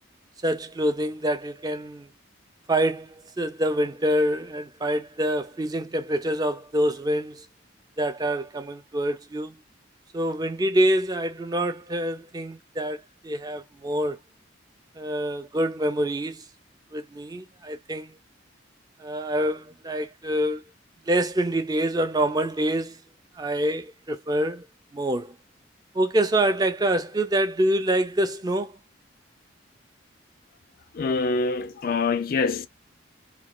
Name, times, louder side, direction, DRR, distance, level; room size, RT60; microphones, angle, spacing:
voice 1, 0.4-2.1 2.7-7.5 8.0-9.5 10.1-14.2 15.0-16.4 16.9-18.2 19.0-20.6 21.1-23.0 23.4-24.6 24.9-25.4 25.9-28.8, right 1 dB, 20° right, 0.4 m, -26 dB
voice 2, 30.9-32.7, left 4 dB, 50° left, 0.4 m, -25 dB
3.1 x 2.2 x 2.3 m
head